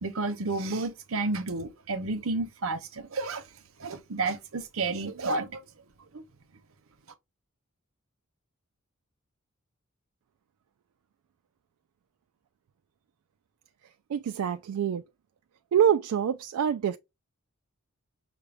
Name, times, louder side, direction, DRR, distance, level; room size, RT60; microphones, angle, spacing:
voice 1, 0.0-3.4 3.8-5.6 6.1-6.2, right 3 dB, 70° right, 0.7 m, -31 dB
voice 2, 14.1-15.0 15.7-17.0, right 8 dB, 90° right, 0.3 m, -25 dB
5.9 x 2.2 x 3.3 m
head